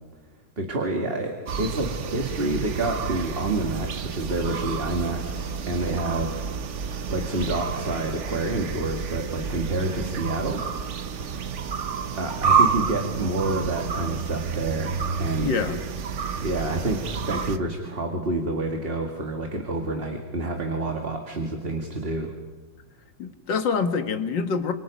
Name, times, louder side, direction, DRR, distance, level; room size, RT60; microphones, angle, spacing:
voice 1, 0.6-6.5 7.1-10.6 12.2-15.5 16.4-22.3, right 2 dB, 35° right, 2 dB, 2.3 m, -28 dB
sound 1, 1.5-17.6, right 6 dB, 50° right, 1.1 m, -29 dB
voice 2, 15.4-15.8 23.2-24.7, left 5 dB, 80° left, 7 dB, 2.3 m, -26 dB
29.0 x 27.0 x 5.3 m, 1.3 s
omnidirectional pair, 1.9 m